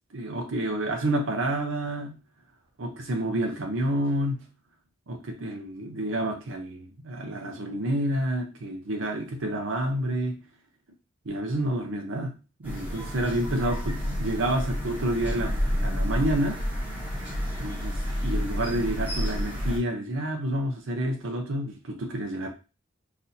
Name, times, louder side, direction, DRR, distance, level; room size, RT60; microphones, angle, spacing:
voice 1, 0.1-2.2 2.8-4.5 5.1-10.4 11.3-16.6 17.6-22.5, right 1 dB, 80° right, 4 dB, 0.6 m, -29 dB
sound 1, 12.6-19.8, equal, 10° right, 1.1 m, -30 dB
4.0 x 2.6 x 2.6 m, 0.31 s
head